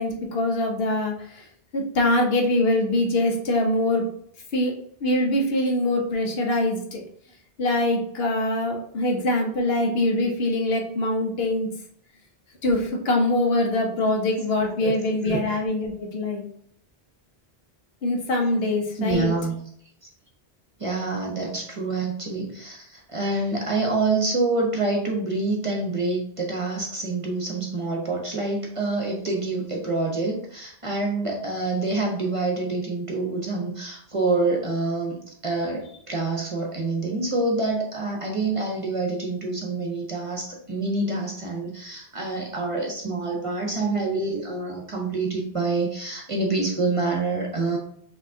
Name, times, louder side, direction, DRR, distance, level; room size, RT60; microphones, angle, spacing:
voice 1, 0.0-1.5 1.7-4.0 4.5-4.7 5.0-7.0 7.6-11.7 12.6-16.4 18.0-19.3, left 1 dB, 70° left, 1 dB, 1.2 m, -23 dB
voice 2, 19.0-19.5 20.8-47.8, right 3 dB, 35° right, 0 dB, 0.8 m, -26 dB
6.5 x 2.9 x 2.7 m, 0.67 s
omnidirectional pair, 1.0 m